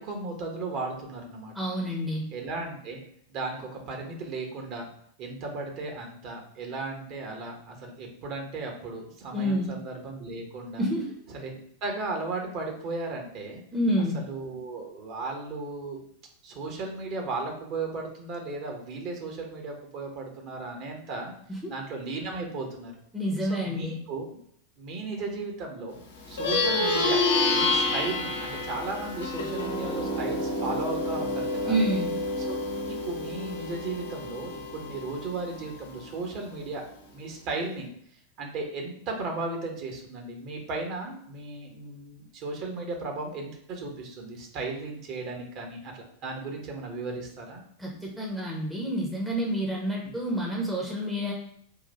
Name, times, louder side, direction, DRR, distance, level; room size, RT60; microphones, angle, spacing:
voice 1, 0.0-1.5 2.3-3.0 3.3-4.9 5.2-10.8 11.3-11.5 11.8-13.6 14.1-16.0 16.4-21.3 21.7-22.9 23.5-24.2 24.8-26.0 26.3-27.2 27.5-31.8 32.5-32.6 32.9-36.8 37.1-37.9 38.4-47.6, right 3 dB, 40° right, 2 dB, 1.1 m, -35 dB
voice 2, 1.5-2.2 9.3-9.7 10.8-11.1 13.7-14.2 21.5-21.7 23.1-23.9 31.7-32.1 47.8-51.3, equal, 5° right, -2 dB, 0.9 m, -28 dB
Plucked string instrument, 26.2-36.0, left 2 dB, 70° left, 1.0 m, -29 dB
3.9 x 2.5 x 4.2 m, 0.66 s
figure-of-eight pair, 90°, 0 cm